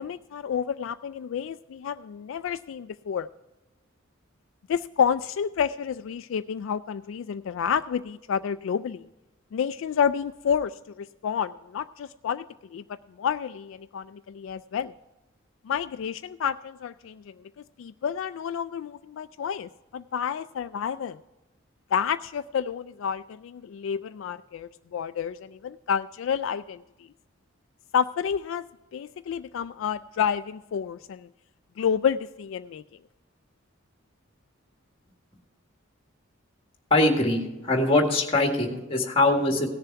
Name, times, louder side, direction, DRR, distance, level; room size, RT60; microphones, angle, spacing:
voice 1, 0.0-3.3 4.7-9.1 9.5-12.4 12.7-14.9 15.6-17.3 17.8-21.2 21.9-27.1 27.9-28.7 28.9-31.3 31.8-32.8, left 7 dB, 70° left, 11 dB, 0.3 m, -29 dB
voice 2, 36.9-39.7, left 2 dB, 25° left, 2 dB, 1.8 m, -22 dB
17.0 x 6.9 x 4.6 m, 1.0 s
head